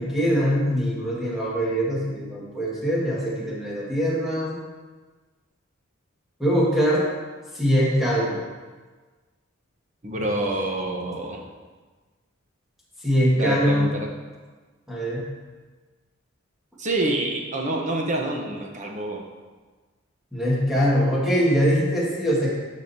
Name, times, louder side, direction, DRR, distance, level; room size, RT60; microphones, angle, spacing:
voice 1, 0.0-4.6 6.4-7.1 7.5-8.4 13.0-13.9 14.9-15.3 20.3-22.5, equal, ahead, -7 dB, 1.8 m, -22 dB
voice 2, 10.0-11.4 13.4-14.1 16.8-19.3, right 2 dB, 35° right, 1 dB, 1.0 m, -27 dB
12.5 x 5.2 x 2.8 m, 1.3 s
head